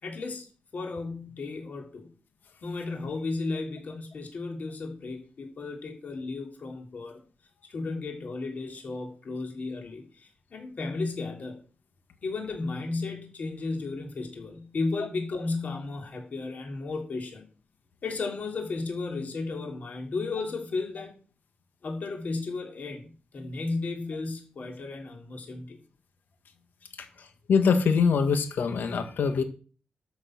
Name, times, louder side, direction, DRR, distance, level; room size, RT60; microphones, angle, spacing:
voice 1, 0.0-0.5 0.7-2.1 2.6-7.2 7.7-11.6 12.2-17.4 18.0-21.1 21.8-25.8, left 3 dB, 55° left, 1 dB, 3.3 m, -34 dB
voice 2, 27.5-29.4, left 5 dB, 80° left, 7 dB, 1.9 m, -23 dB
12.5 x 7.3 x 6.0 m, 0.38 s
wide cardioid pair, 135°, 3 cm